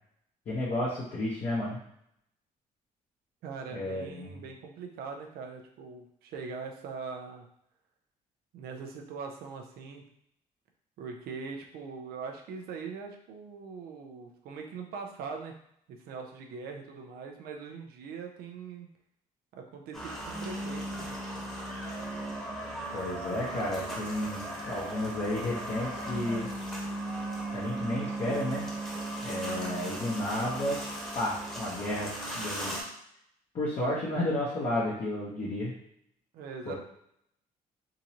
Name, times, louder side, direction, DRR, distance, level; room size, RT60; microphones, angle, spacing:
voice 1, 0.5-1.8 3.7-4.3 22.9-26.5 27.5-28.6 29.2-30.8 31.1-32.1 32.3-32.7 33.5-35.7 36.7-36.8, left 1 dB, 50° left, -9 dB, 1.2 m, -32 dB
voice 2, 3.4-7.5 8.5-10.1 11.0-15.5 16.0-18.9 19.5-21.2 36.3-36.7, right 5 dB, 85° right, 3 dB, 0.6 m, -41 dB
sound 1, 19.9-32.8, right 1 dB, 5° left, 1.2 m, -37 dB
3.7 x 2.6 x 3.0 m, 0.72 s
cardioid pair, 95°, 15 cm